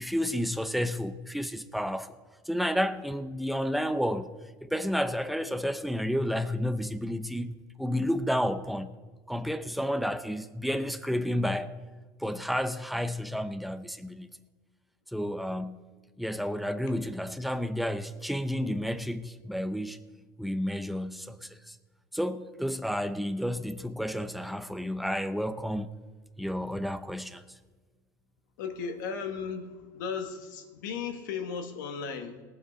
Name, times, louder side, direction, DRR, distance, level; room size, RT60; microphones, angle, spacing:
voice 1, 0.0-2.2 2.5-4.3 4.6-8.9 9.3-11.8 12.2-14.3 15.1-15.8 16.2-20.0 20.4-21.8 22.1-25.9 26.4-27.4, equal, ahead, 0.7 m, -31 dB
voice 2, 28.6-32.4, left 6 dB, 90° left, 1.6 m, -36 dB
19.0 x 7.4 x 5.2 m
supercardioid pair, 115°, 10 cm